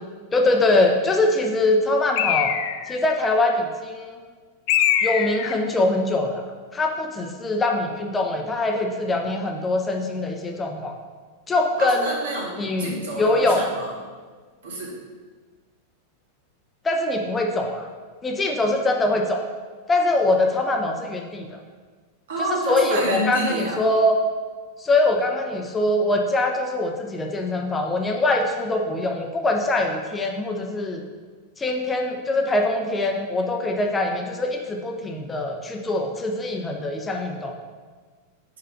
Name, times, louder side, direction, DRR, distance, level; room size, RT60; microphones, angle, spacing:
voice 1, 0.3-2.5 2.9-4.2 5.0-6.4 6.7-10.9 11.5-12.1 12.6-13.6 16.8-17.9 18.2-19.4 19.9-21.6 22.4-24.2 24.8-31.0 31.6-37.5, left 2 dB, 15° left, 2 dB, 0.7 m, -23 dB
Bird, 2.2-3.0 4.7-5.6, left 10 dB, 50° left, 0.4 m, -22 dB
voice 2, 11.8-13.9 14.6-15.0 22.3-23.8, right 1 dB, 60° right, -2 dB, 1.8 m, -28 dB
5.5 x 5.0 x 5.1 m, 1.5 s
figure-of-eight pair, 90°, 0 cm